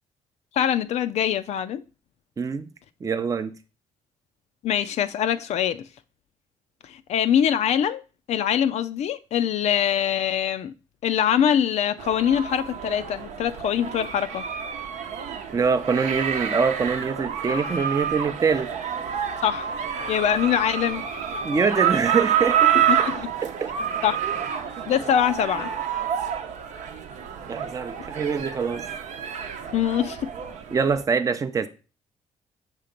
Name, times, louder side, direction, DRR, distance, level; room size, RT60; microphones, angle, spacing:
voice 1, 0.5-1.8 4.6-5.8 6.8-8.0 8.3-10.7 11.0-14.5 19.4-19.7 20.1-21.1 22.9-23.3 24.0-24.2 24.9-25.7 29.7-30.3, left 9 dB, 60° left, 0.4 m, -23 dB
voice 2, 2.4-2.7 3.0-3.5 15.5-18.7 21.4-22.9 23.4-23.7 24.2-24.3 27.5-28.9 30.7-31.7, right 5 dB, 25° right, 0.5 m, -24 dB
sound 1, 12.0-31.0, right 8 dB, 75° right, 0.8 m, -28 dB
6.7 x 2.9 x 5.1 m
cardioid pair, 95°, 13 cm